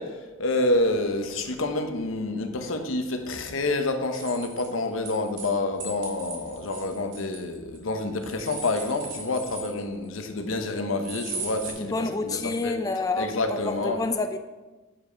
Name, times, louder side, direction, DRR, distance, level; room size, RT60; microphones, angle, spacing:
voice 1, 0.0-12.7 13.2-14.0, left 2 dB, 85° left, 6 dB, 1.0 m, -28 dB
sound 1, 4.1-5.5 5.8-7.8 8.2-10.1 11.0-11.7, right 4 dB, 60° right, 2.5 m, -38 dB
voice 2, 11.8-14.4, left 3 dB, 20° left, 7 dB, 0.3 m, -29 dB
8.9 x 5.1 x 5.1 m, 1.2 s
head